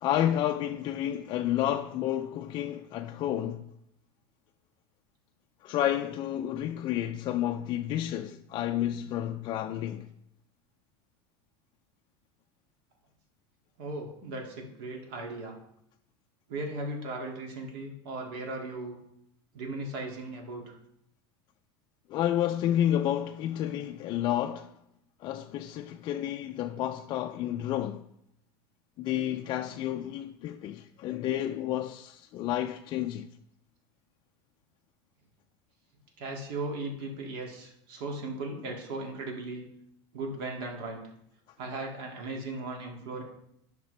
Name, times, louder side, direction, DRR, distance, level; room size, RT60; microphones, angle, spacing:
voice 1, 0.0-3.7 5.6-10.1 22.1-24.7 25.2-28.0 29.0-33.3, left 11 dB, 40° left, 0.4 m, -30 dB
voice 2, 13.8-15.6 16.5-19.0 19.5-20.8 36.2-39.7 40.1-41.0 41.6-43.2, right 2 dB, 65° right, 2.1 m, -37 dB
10.5 x 5.9 x 3.2 m
supercardioid pair, 135°, 13 cm